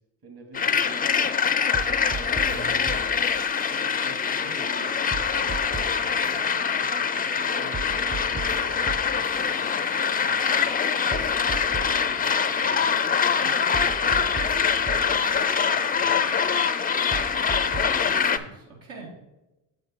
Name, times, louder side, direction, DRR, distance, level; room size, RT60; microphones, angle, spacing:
voice 1, 0.2-6.3 6.8-10.5 11.0-12.9 13.4-16.4, right 2 dB, 55° right, 2 dB, 2.5 m, -47 dB
sound 1, 0.5-18.4, left 6 dB, 20° left, 0.4 m, -24 dB
sound 2, 1.5-5.9 6.2-11.9 12.2-17.9 18.2-18.4, right 5 dB, 25° right, 0.8 m, -38 dB
voice 2, 2.4-2.8 17.6-19.1, right 3 dB, 80° right, -4 dB, 2.2 m, -44 dB
7.1 x 6.5 x 4.5 m, 0.99 s
supercardioid pair, 80°, 45 cm